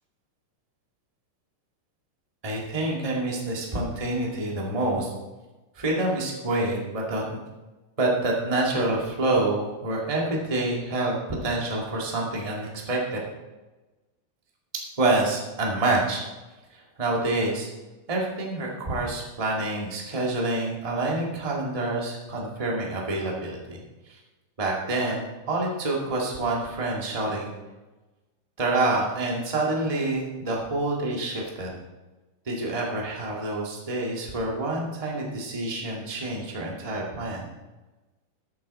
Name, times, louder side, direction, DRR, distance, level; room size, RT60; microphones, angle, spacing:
voice 1, 2.4-5.1 5.7-7.4 8.0-13.2 15.0-16.2 16.7-17.7 18.1-23.8 24.1-24.2 24.6-27.5 28.6-31.7 32.4-37.5, right 2 dB, 15° right, -2 dB, 1.1 m, -27 dB
13.0 x 9.1 x 4.3 m, 1.1 s
omnidirectional pair, 4.5 m